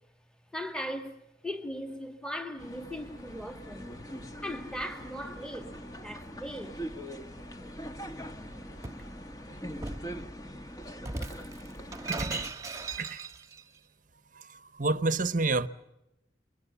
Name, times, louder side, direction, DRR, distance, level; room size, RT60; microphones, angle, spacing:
voice 1, 0.5-1.1 1.4-3.9 4.4-6.8, equal, 5° left, 1.9 m, -38 dB
sound 1, 2.6-12.5, equal, 20° left, 1.4 m, -43 dB
sound 2, 3.0-10.3, left 1 dB, 80° left, 3.6 m, -53 dB
Shatter, 8.2-9.1 9.8-10.1 11.0-13.6, right 3 dB, 20° right, 1.4 m, -38 dB
voice 2, 12.1-12.5 13.0-13.2 14.3-15.7, right 3 dB, 45° right, 1.0 m, -29 dB
29.5 x 22.0 x 7.0 m
head